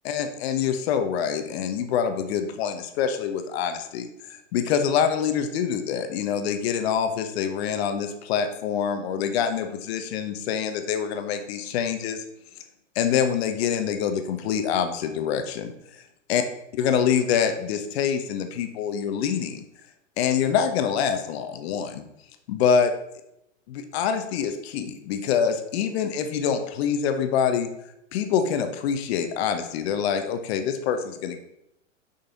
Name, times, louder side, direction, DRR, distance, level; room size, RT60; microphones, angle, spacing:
voice 1, 0.0-4.1 4.5-12.2 12.9-15.7 16.3-16.4 16.7-19.6 20.2-22.0 22.5-22.9 23.7-27.7 28.1-31.4, left 7 dB, 55° left, 8 dB, 1.1 m, -25 dB
6.7 x 5.6 x 4.0 m, 0.82 s
hypercardioid pair, 115°, 38 cm